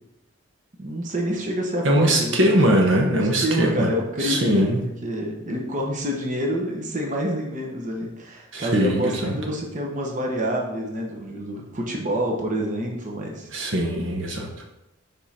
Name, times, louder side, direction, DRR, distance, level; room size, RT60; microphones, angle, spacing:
voice 1, 0.8-2.5 3.4-4.7 5.0-13.5, equal, 35° right, 0 dB, 1.0 m, -27 dB
voice 2, 1.8-3.9 4.2-4.8 8.5-9.4 13.5-14.5, right 1 dB, 60° right, 1 dB, 1.0 m, -21 dB
5.4 x 5.3 x 4.3 m, 0.91 s
head